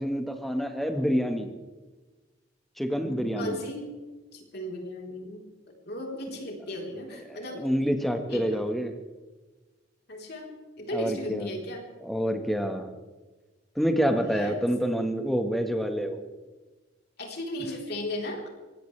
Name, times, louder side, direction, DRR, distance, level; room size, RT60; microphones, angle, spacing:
voice 1, 0.0-1.5 2.8-3.6 7.2-8.9 10.9-11.5 12.0-12.9 13.7-16.2, equal, ahead, 5 dB, 1.5 m, -27 dB
voice 2, 2.9-3.9 4.3-5.4 5.8-7.6 8.3-8.6 10.1-11.8 14.1-14.6 17.2-18.5, left 1 dB, 55° left, 0 dB, 3.9 m, -36 dB
23.5 x 18.0 x 3.4 m, 1.3 s
head